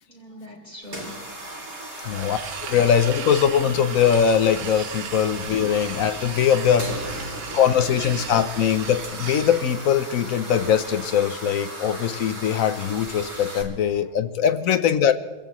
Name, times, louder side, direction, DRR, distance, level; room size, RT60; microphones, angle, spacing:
voice 1, 0.1-1.3 1.9-2.4 2.7-2.8 7.2-7.6 8.3-8.6, left 1 dB, 30° left, 3.8 m, -45 dB
sound 1, 0.8-13.6, right 1 dB, 30° right, 2.8 m, -36 dB
voice 2, 2.0-15.1, left 8 dB, 65° left, 1.0 m, -21 dB
sound 2, 2.1-9.7, right 8 dB, 70° right, 1.3 m, -37 dB
27.0 x 16.0 x 3.1 m
omnidirectional pair, 1.6 m